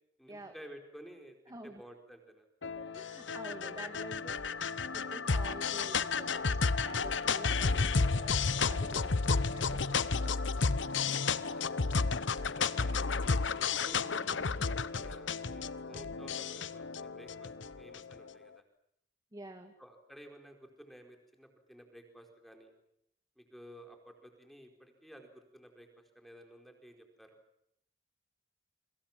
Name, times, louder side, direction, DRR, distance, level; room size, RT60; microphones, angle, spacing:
voice 1, 0.2-2.5 11.5-12.0 12.6-13.2 13.7-17.5 17.8-18.6 19.8-22.7 23.4-25.9 26.1-27.4, equal, ahead, 4 dB, 4.6 m, -54 dB
voice 2, 1.5-1.8 2.6-4.5 4.9-10.4 14.0-14.6 19.3-19.7, right 1 dB, 20° right, 6 dB, 2.1 m, -49 dB
sound 1, 2.6-18.1, left 4 dB, 80° left, 1.0 m, -32 dB
28.5 x 25.0 x 7.5 m, 0.74 s
head